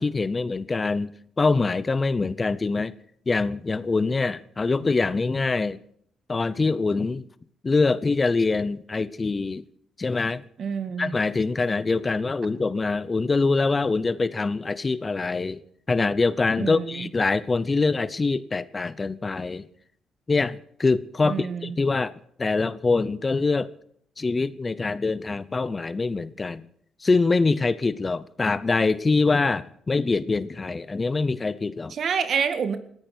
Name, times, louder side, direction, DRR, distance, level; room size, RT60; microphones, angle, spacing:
voice 1, 0.0-2.9 3.3-5.8 6.3-7.2 7.6-9.6 10.0-10.4 11.0-15.6 15.9-19.7 20.3-22.1 22.4-23.7 24.2-26.6 27.0-31.9, left 3 dB, 30° left, 0.7 m, -24 dB
voice 2, 10.6-11.1 16.6-17.1 21.2-21.7 31.9-32.8, right 6 dB, 55° right, 1.9 m, -27 dB
20.0 x 15.5 x 4.5 m
cardioid pair, 90°, 0 cm